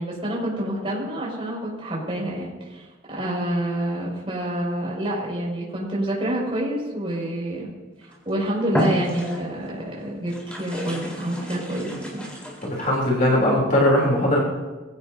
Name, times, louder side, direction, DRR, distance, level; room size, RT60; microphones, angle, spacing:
voice 1, 0.0-7.7 8.0-12.3, right 1 dB, 30° right, -5 dB, 6.2 m, -28 dB
sound 1, 8.0-8.2 8.7-9.7 10.2-13.0, left 1 dB, 5° left, 4.0 m, -30 dB
voice 2, 12.6-14.4, left 1 dB, 45° left, -3 dB, 3.4 m, -19 dB
24.5 x 16.0 x 2.8 m, 1.3 s
head